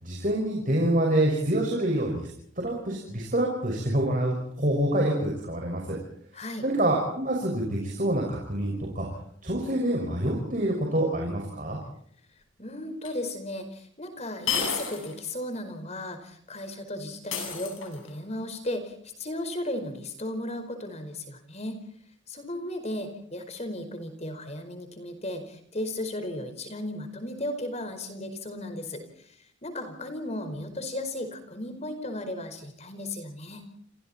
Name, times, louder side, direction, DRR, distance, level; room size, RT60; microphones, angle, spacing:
voice 1, 0.0-2.3 2.6-6.0 6.6-9.1 9.4-11.8, right 1 dB, 40° right, 0 dB, 5.9 m, -26 dB
voice 2, 6.3-6.7 12.6-21.8 22.3-33.6, left 1 dB, 30° left, 7 dB, 4.8 m, -35 dB
sound 1, 13.0-13.1 14.5-15.2 15.5-15.6 17.3-18.2, left 6 dB, 80° left, 7.5 m, -31 dB
30.0 x 27.0 x 4.4 m, 0.66 s
head